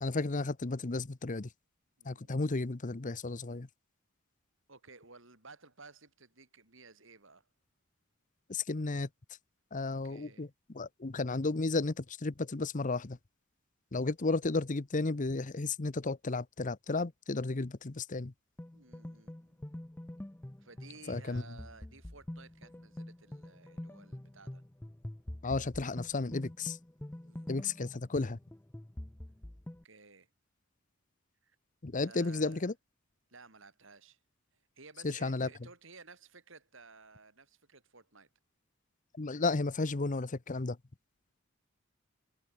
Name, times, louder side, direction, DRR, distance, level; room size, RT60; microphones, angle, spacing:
voice 1, 0.0-1.5 2.0-3.7 8.5-9.1 9.7-10.5 10.7-13.2 13.9-18.3 21.1-21.4 25.4-26.8 27.5-28.4 31.8-32.7 35.0-35.5 39.1-40.8, left 3 dB, 40° left, 0.8 m, -33 dB
voice 2, 2.0-2.5 4.7-7.5 10.0-10.5 18.7-19.7 20.6-24.6 27.2-28.0 29.8-30.3 31.4-31.6 32.0-32.7 33.3-34.2 34.8-38.3, right 4 dB, 65° right, 5.6 m, -56 dB
sound 1, 18.6-29.8, left 1 dB, 10° left, 0.5 m, -45 dB
head